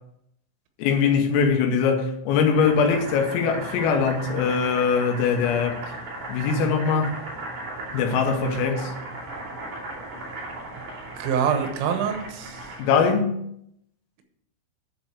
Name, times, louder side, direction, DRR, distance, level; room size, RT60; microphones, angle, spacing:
voice 1, 0.8-5.8 6.3-7.2 7.9-8.9 12.8-13.4, left 5 dB, 85° left, 3.9 m, -22 dB
Boiling, 2.4-13.1, right 2 dB, 45° right, 3.6 m, -37 dB
voice 2, 11.2-12.6, right 7 dB, 80° right, 3.7 m, -25 dB
10.5 x 4.6 x 6.7 m
omnidirectional pair, 5.8 m